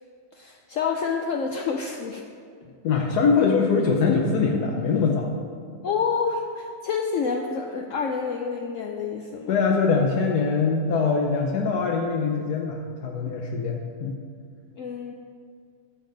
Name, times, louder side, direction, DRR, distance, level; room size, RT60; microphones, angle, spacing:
voice 1, 0.3-2.2 5.8-9.5 14.8-15.1, left 5 dB, 65° left, 2 dB, 0.9 m, -28 dB
voice 2, 2.8-5.3 9.5-14.2, left 5 dB, 80° left, 0 dB, 1.3 m, -23 dB
13.5 x 7.3 x 3.9 m, 2.2 s
omnidirectional pair, 1.7 m